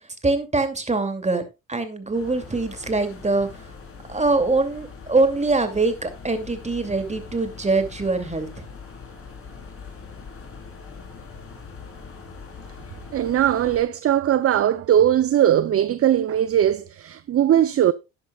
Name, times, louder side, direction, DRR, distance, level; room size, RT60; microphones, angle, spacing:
voice 1, 0.2-1.4 1.7-3.7 4.1-8.6, right 3 dB, 20° right, 2.5 m, -23 dB
sound 1, 2.1-13.8, left 5 dB, 40° left, 4.0 m, -42 dB
voice 2, 13.1-17.9, right 11 dB, 45° right, 0.6 m, -19 dB
11.5 x 10.5 x 2.4 m
supercardioid pair, 70°, 33 cm